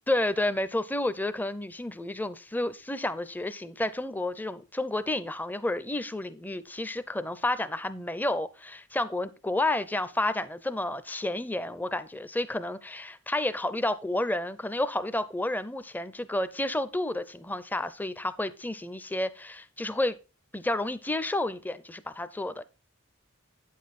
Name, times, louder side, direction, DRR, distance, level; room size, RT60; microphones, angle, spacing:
voice 1, 0.1-20.2 20.5-22.6, left 1 dB, 10° left, 0.5 m, -30 dB
9.1 x 7.3 x 4.1 m
head